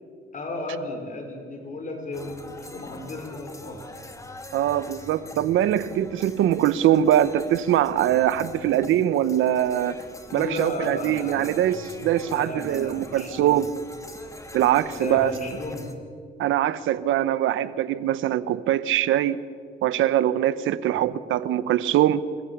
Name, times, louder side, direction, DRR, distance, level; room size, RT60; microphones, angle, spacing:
voice 1, 0.3-3.8 10.3-11.6 12.2-13.6 14.9-15.9 20.9-21.0, left 2 dB, 40° left, 5.2 m, -34 dB
sound 1, 2.1-15.9, left 2 dB, 15° left, 2.2 m, -44 dB
voice 2, 4.5-9.9 10.3-13.7 14.5-15.3 16.4-19.4 19.8-22.2, right 12 dB, 85° right, 0.9 m, -22 dB
26.5 x 15.5 x 7.2 m
cardioid pair, 90°, 20 cm